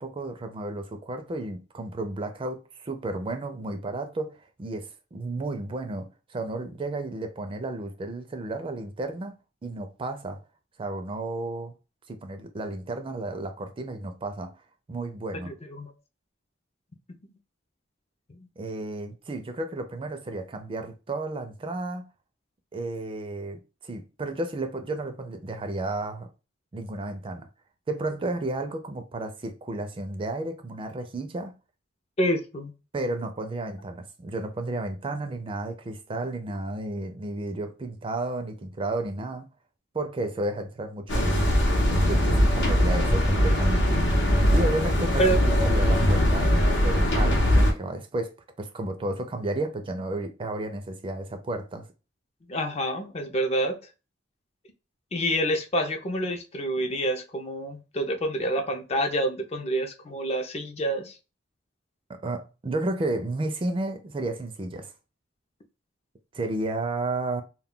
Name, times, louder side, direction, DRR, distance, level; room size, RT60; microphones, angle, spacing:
voice 1, 0.0-9.4 9.6-10.4 10.8-11.7 12.1-14.5 14.9-15.5 18.6-22.1 22.7-26.3 26.7-27.5 27.9-31.5 32.9-39.5 39.9-41.4 41.9-44.0 44.5-51.9 62.1-64.9 66.3-67.4, right 2 dB, 30° right, 0.4 m, -32 dB
voice 2, 15.4-15.9 17.2-17.3 18.3-18.4 32.2-32.7 45.2-45.4 52.5-53.8 55.1-61.2, right 1 dB, 35° left, 0.4 m, -27 dB
sound 1, 41.1-47.7, equal, 80° left, 0.8 m, -21 dB
2.2 x 2.2 x 3.6 m
head